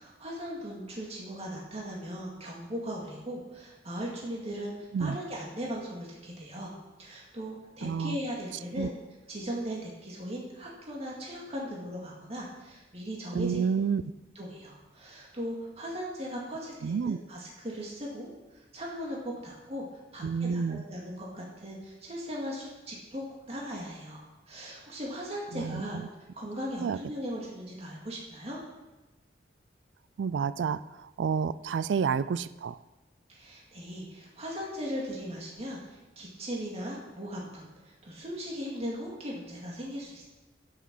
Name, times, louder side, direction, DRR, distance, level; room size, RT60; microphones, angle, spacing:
voice 1, 0.0-6.7 7.0-8.9 9.3-13.6 14.4-19.9 20.1-23.2 23.5-26.0 26.3-28.6 33.3-40.2, equal, 35° right, -3 dB, 2.1 m, -38 dB
voice 2, 7.8-8.2 8.8-8.9 13.3-14.0 16.8-17.2 20.2-20.8 25.5-26.1 26.8-27.0 30.2-32.8, right 6 dB, 85° right, 16 dB, 0.4 m, -29 dB
9.6 x 9.1 x 6.1 m, 1.1 s
head